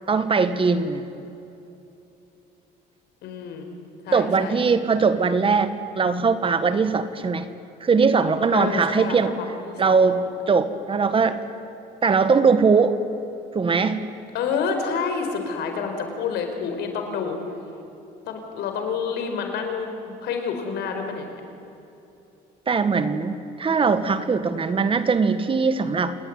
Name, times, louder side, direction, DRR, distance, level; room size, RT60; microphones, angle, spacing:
voice 1, 0.1-1.1 4.1-7.5 7.8-9.3 9.8-10.2 10.5-11.4 12.0-12.9 13.5-14.0 22.7-26.2, right 5 dB, 30° right, 11 dB, 1.6 m, -20 dB
voice 2, 3.2-3.7 4.0-4.6 8.5-10.2 14.3-17.4 18.3-21.3, left 5 dB, 80° left, 5 dB, 4.8 m, -29 dB
28.0 x 19.5 x 9.6 m, 2.9 s
cardioid pair, 110°, 17 cm